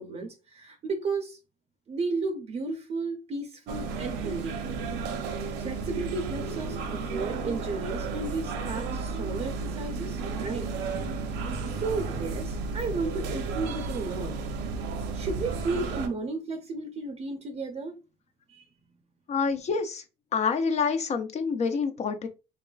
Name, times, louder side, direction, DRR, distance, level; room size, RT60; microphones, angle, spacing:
voice 1, 0.0-1.4 1.9-4.5 5.6-10.7 11.8-14.3 15.1-17.9 18.5-18.6, right 3 dB, 40° right, 0.6 m, -33 dB
sound 1, 3.7-16.1, right 4 dB, 90° right, 0.6 m, -33 dB
voice 2, 19.3-20.0 20.3-22.3, left 5 dB, 40° left, 0.5 m, -27 dB
3.1 x 2.3 x 2.2 m
cardioid pair, 110°, 17 cm